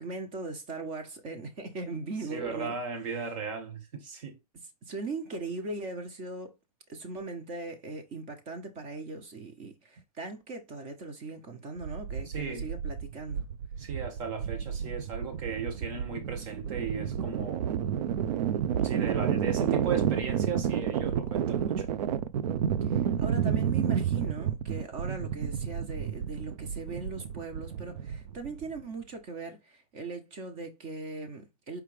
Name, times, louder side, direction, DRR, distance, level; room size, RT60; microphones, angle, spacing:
voice 1, 0.0-2.7 4.9-6.5 6.9-13.5 22.8-31.8, right 3 dB, 40° right, 1.2 m, -39 dB
voice 2, 2.3-4.4 12.3-12.7 13.8-17.7 18.8-22.0, right 5 dB, 55° right, 1.7 m, -36 dB
sound 1, 11.8-28.8, right 8 dB, 85° right, 0.5 m, -31 dB
4.8 x 3.3 x 3.3 m
supercardioid pair, 145°, 20 cm